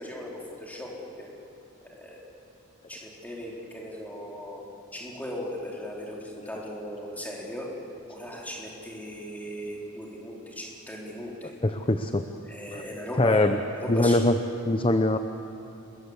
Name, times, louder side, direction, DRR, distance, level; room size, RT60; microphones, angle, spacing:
voice 1, 0.0-1.3 1.9-2.2 2.9-4.6 4.9-7.7 8.1-11.5 12.5-14.3, equal, 5° left, -3 dB, 4.0 m, -37 dB
voice 2, 11.6-12.2 12.7-12.8 13.2-13.6 13.9-14.4 14.7-15.2, left 2 dB, 25° left, 7 dB, 0.7 m, -22 dB
28.5 x 21.5 x 8.1 m, 2.8 s
head